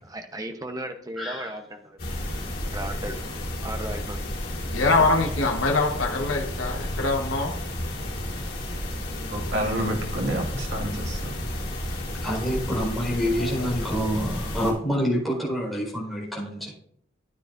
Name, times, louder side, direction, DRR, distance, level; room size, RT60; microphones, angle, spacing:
voice 1, 0.0-3.3 3.6-4.2 4.7-5.1, right 1 dB, 20° right, 5 dB, 0.9 m, -36 dB
voice 2, 1.2-1.5 12.2-16.7, equal, ahead, -5 dB, 4.5 m, -27 dB
sound 1, 2.0-14.7, left 1 dB, 50° left, 3.9 m, -32 dB
voice 3, 4.7-7.5 9.5-9.9, left 3 dB, 75° left, 1 dB, 1.2 m, -24 dB
voice 4, 9.3-11.3, right 1 dB, 60° right, 1 dB, 2.0 m, -29 dB
13.5 x 9.6 x 2.6 m, 0.66 s
head